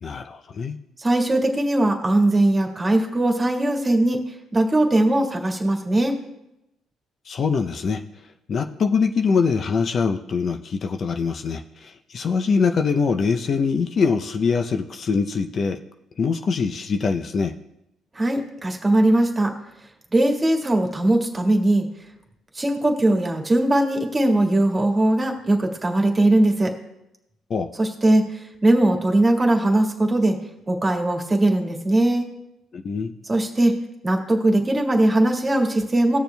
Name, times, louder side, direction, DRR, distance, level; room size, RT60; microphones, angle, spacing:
voice 1, 0.0-0.8 7.3-8.0 8.5-15.8 16.2-17.5 27.5-27.7 32.7-33.1, left 5 dB, 50° left, 6 dB, 0.6 m, -23 dB
voice 2, 1.0-4.2 4.5-6.1 18.2-19.6 20.1-21.9 22.5-26.7 27.8-30.4 30.7-32.3 33.2-33.8 34.0-36.2, right 1 dB, 25° right, 2 dB, 1.8 m, -20 dB
19.0 x 6.7 x 2.3 m, 0.88 s
supercardioid pair, 65°, 0 cm